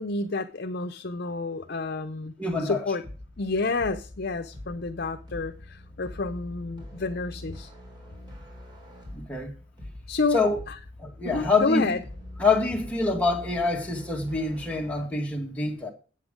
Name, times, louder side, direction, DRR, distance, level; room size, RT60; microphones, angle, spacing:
voice 1, 0.0-2.3 2.6-3.0 3.4-7.7 10.1-10.8 11.2-12.0, left 3 dB, 55° left, 0.7 m, -29 dB
voice 2, 2.4-2.9 9.1-9.5 10.3-10.6 11.0-11.9 12.4-15.9, left 3 dB, 5° left, 2.1 m, -26 dB
sound 1, 3.0-15.0, left 1 dB, 25° right, 3.8 m, -44 dB
8.4 x 8.3 x 5.1 m
head